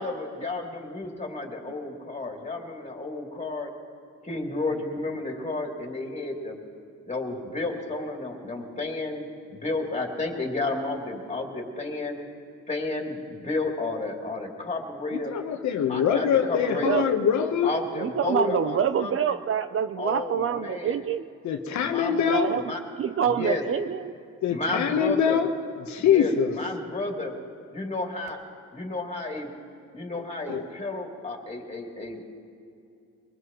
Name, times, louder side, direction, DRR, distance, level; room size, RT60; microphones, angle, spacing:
voice 1, 0.0-3.7 4.2-6.6 7.1-9.2 9.5-12.1 12.7-15.3 15.9-17.0 17.6-19.1 20.0-20.9 21.8-22.8 23.2-23.6 24.5-25.4 26.0-27.3 27.7-28.4 28.7-29.5 29.9-32.3, left 2 dB, 25° left, 0 dB, 2.9 m, -32 dB
voice 2, 15.1-17.8 21.4-22.6 24.4-25.5 25.8-26.7 30.5-30.6, left 7 dB, 70° left, 5 dB, 1.1 m, -24 dB
voice 3, 18.0-21.2 22.3-22.7 23.0-24.1, right 8 dB, 45° right, 11 dB, 0.6 m, -26 dB
24.0 x 19.5 x 3.0 m, 2.5 s
cardioid pair, 90°, 30 cm